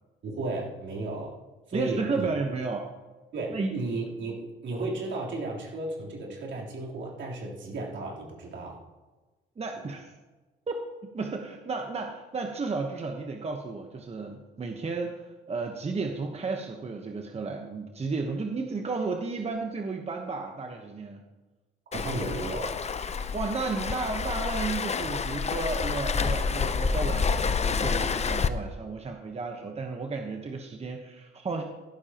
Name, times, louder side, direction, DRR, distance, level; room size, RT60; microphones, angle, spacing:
voice 1, 0.2-1.4 1.7-2.3 3.3-8.8 21.9-22.8, right 2 dB, 70° right, -3 dB, 3.7 m, -34 dB
voice 2, 1.7-2.9 3.5-3.7 9.6-10.1 10.7-10.8 11.1-21.2 23.3-31.6, right 4 dB, 30° right, 3 dB, 1.2 m, -33 dB
Waves surf, 21.9-28.5, left 5 dB, 35° left, 0.7 m, -28 dB
14.5 x 12.0 x 3.0 m, 1.2 s
cardioid pair, 90°, 20 cm